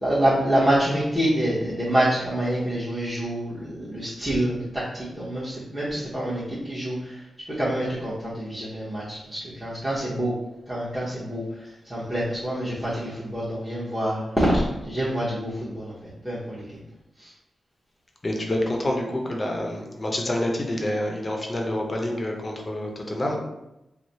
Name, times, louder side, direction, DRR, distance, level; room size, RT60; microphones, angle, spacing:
voice 1, 0.0-7.2 7.5-10.3 10.7-11.4 11.9-15.9 16.2-16.6 17.2-17.3, right 1 dB, 5° right, -10 dB, 0.9 m, -26 dB
voice 2, 18.2-23.4, left 1 dB, 30° left, 1 dB, 0.7 m, -27 dB
3.1 x 2.0 x 4.1 m, 0.91 s
cardioid pair, 75°, 0 cm